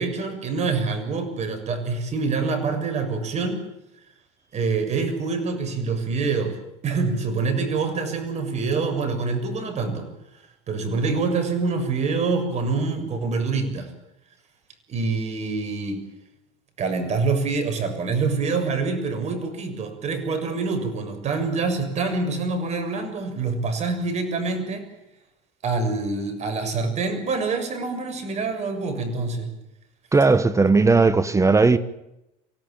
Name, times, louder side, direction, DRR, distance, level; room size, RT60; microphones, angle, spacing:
voice 1, 0.0-3.6 4.5-6.6 6.8-10.1 10.7-13.9 14.9-16.0 16.8-24.8 25.6-29.5, right 4 dB, 40° right, 7.0 m, -26 dB
voice 2, 30.1-31.8, right 3 dB, 15° right, 1.4 m, -17 dB
25.0 x 17.5 x 9.1 m
supercardioid pair, 100°, 17 cm